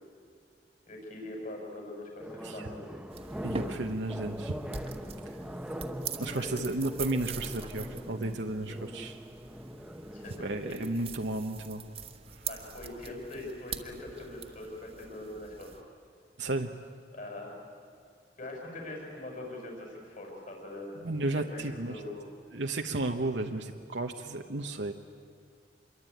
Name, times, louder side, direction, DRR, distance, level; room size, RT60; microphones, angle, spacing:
voice 1, 0.9-2.8 6.1-6.6 10.1-10.8 12.5-15.7 17.1-17.5 18.4-20.9 21.3-22.2, left 1 dB, 50° left, 0 dB, 6.4 m, -42 dB
sound 1, 2.2-10.7, equal, 5° right, 1.1 m, -41 dB
sound 2, 3.1-15.8, right 5 dB, 35° right, 1.5 m, -44 dB
voice 2, 3.4-4.6 5.3-5.4 6.2-9.2 10.4-11.8 12.4-12.5 16.4-16.7 21.0-22.0 22.5-24.9, right 2 dB, 85° right, 3 dB, 1.1 m, -33 dB
26.5 x 22.5 x 9.3 m, 2.2 s
head